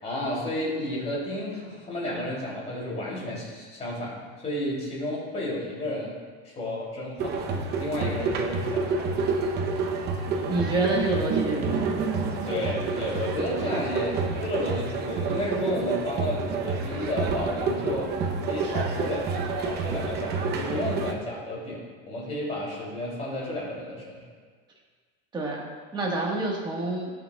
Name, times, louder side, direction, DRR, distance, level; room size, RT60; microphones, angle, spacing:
voice 1, 0.0-6.2 6.4-7.4 7.8-9.1 12.4-18.1 18.5-24.2, left 1 dB, 20° left, -5 dB, 3.1 m, -32 dB
sound 1, 7.2-21.1, right 4 dB, 30° right, 0.8 m, -28 dB
voice 2, 10.5-12.0 25.3-27.1, right 2 dB, 15° right, -2 dB, 1.5 m, -28 dB
18.0 x 6.8 x 2.3 m, 1.5 s
cardioid pair, 165°, 31 cm